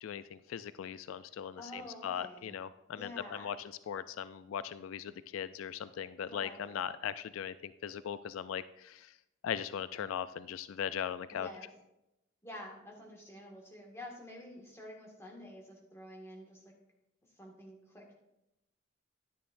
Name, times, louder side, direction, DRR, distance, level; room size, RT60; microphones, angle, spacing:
voice 1, 0.0-3.1 3.4-9.1 9.4-11.5, left 8 dB, 80° left, 14 dB, 0.3 m, -39 dB
voice 2, 1.6-2.6 2.9-3.6 6.2-6.8 11.3-11.7 12.4-16.7 17.4-18.2, left 1 dB, 15° left, -2 dB, 1.8 m, -49 dB
11.0 x 10.0 x 2.6 m, 0.87 s
head